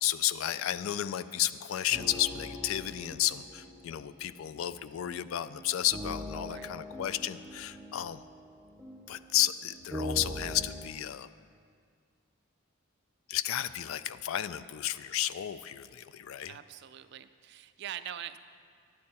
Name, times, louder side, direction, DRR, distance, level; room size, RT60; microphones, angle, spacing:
voice 1, 0.0-8.2 9.1-11.3 13.3-16.6, left 12 dB, 70° left, 15 dB, 0.3 m, -32 dB
sound 1, 1.9-10.9, equal, 10° right, 0.7 m, -42 dB
voice 2, 16.5-18.4, right 10 dB, 50° right, 12 dB, 0.3 m, -43 dB
10.5 x 8.7 x 4.2 m, 2.1 s
head